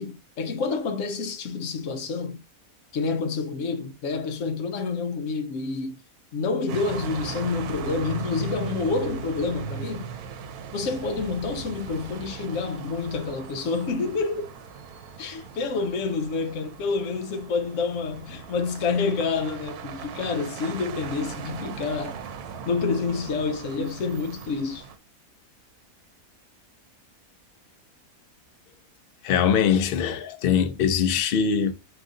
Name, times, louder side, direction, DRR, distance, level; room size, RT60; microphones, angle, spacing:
voice 1, 0.0-2.4 2.9-6.0 6.3-10.1 10.7-14.5 15.2-22.2 22.7-24.9, left 4 dB, 60° left, 1.0 m, -28 dB
sound 1, 6.7-25.0, right 7 dB, 80° right, 1.1 m, -38 dB
voice 2, 29.2-31.7, left 7 dB, 85° left, 0.5 m, -22 dB
3.7 x 3.0 x 3.7 m
omnidirectional pair, 1.6 m